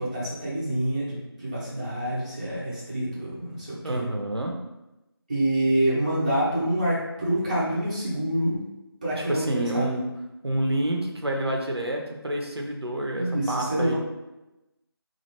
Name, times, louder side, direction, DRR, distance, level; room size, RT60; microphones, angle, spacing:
voice 1, 0.0-4.0 5.3-8.6 9.0-9.4 9.7-9.9 13.2-13.9, right 1 dB, 20° right, -9 dB, 0.6 m, -27 dB
voice 2, 3.8-4.5 9.3-10.0 10.4-13.9, right 1 dB, 80° right, 1 dB, 0.7 m, -28 dB
3.2 x 2.5 x 2.8 m, 0.97 s
figure-of-eight pair, 165°, 13 cm